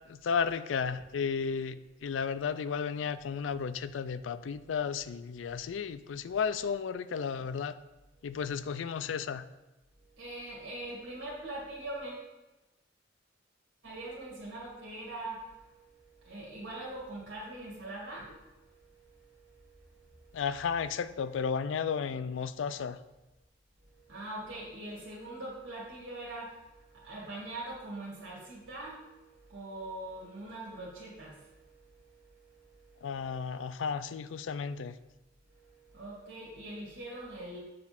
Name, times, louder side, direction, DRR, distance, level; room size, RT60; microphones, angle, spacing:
voice 1, 0.1-7.7 8.2-9.4 20.3-23.0 33.0-35.0, left 6 dB, 85° left, 14 dB, 0.4 m, -33 dB
voice 2, 10.1-12.3 13.8-20.4 23.9-33.4 35.5-37.6, right 1 dB, 75° right, -6 dB, 2.0 m, -43 dB
7.7 x 3.5 x 5.8 m, 1.0 s
head